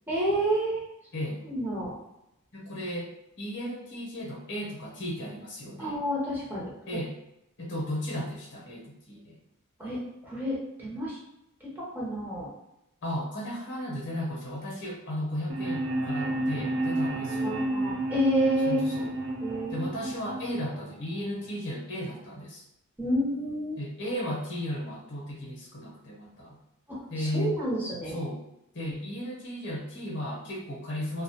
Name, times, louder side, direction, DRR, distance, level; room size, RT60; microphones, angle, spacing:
voice 1, 0.1-0.9 1.4-2.0 5.8-6.7 9.8-11.2 11.6-12.5 17.4-19.0 19.4-19.8 23.0-23.8 26.9-28.1, equal, 10° right, -7 dB, 0.6 m, -29 dB
voice 2, 1.1-1.4 2.5-3.1 3.4-6.0 6.9-7.2 7.6-9.4 13.0-17.6 18.6-19.1 19.7-22.6 23.8-26.6 27.1-27.6 28.1-28.4 28.7-31.2, equal, 55° left, -3 dB, 0.7 m, -35 dB
sound 1, 15.5-21.5, right 2 dB, 55° right, 0.5 m, -31 dB
2.3 x 2.0 x 2.7 m, 0.85 s
head